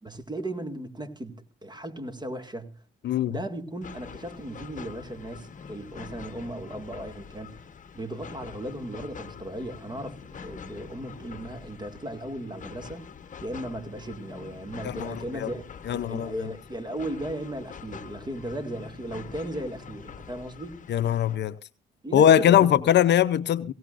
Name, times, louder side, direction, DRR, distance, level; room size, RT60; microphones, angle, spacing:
voice 1, 0.0-2.8 3.3-7.6 7.9-13.1 13.4-20.9 22.0-22.9, right 1 dB, 20° right, 2.0 m, -36 dB
voice 2, 3.0-3.4 14.8-15.5 15.9-16.5 20.9-21.5 22.1-23.7, left 10 dB, 60° left, 0.6 m, -21 dB
sound 1, 3.8-21.4, left 6 dB, 40° left, 1.1 m, -45 dB
18.0 x 17.5 x 2.5 m
cardioid pair, 90°, 20 cm